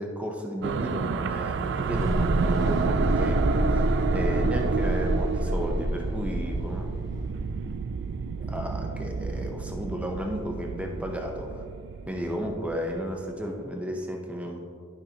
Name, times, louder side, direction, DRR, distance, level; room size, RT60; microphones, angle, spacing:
voice 1, 0.0-6.9 8.4-11.6 12.1-14.7, equal, 5° right, 1 dB, 0.8 m, -33 dB
sound 1, 0.6-13.2, right 5 dB, 60° right, 0.3 m, -30 dB
sound 2, 1.9-8.5, equal, 50° left, 1.5 m, -29 dB
11.5 x 5.7 x 2.9 m, 2.1 s
head